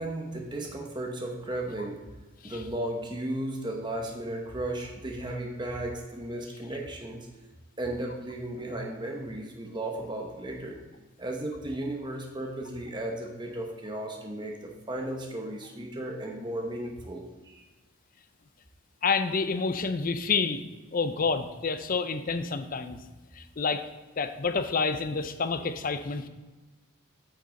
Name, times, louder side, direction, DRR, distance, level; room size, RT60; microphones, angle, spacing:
voice 1, 0.0-2.0 2.4-7.3 7.8-10.8 11.2-17.6, right 1 dB, 20° right, 1 dB, 0.9 m, -35 dB
voice 2, 19.0-20.6 20.9-23.0 23.3-23.8 24.2-26.3, left 4 dB, 40° left, 10 dB, 0.5 m, -28 dB
8.2 x 6.6 x 3.8 m, 1.2 s
head